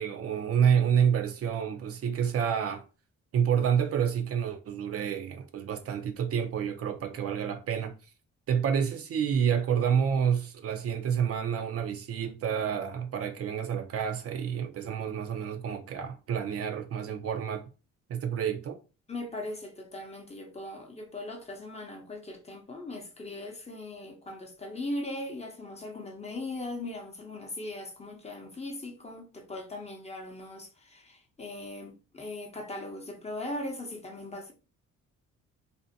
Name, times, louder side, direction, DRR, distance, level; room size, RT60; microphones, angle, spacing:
voice 1, 0.0-2.8 3.3-7.9 8.5-17.6 18.1-18.8, right 8 dB, 50° right, 0.4 m, -28 dB
voice 2, 19.1-34.5, left 2 dB, 20° left, 0.7 m, -39 dB
2.6 x 2.1 x 2.6 m
cardioid pair, 90°, 30 cm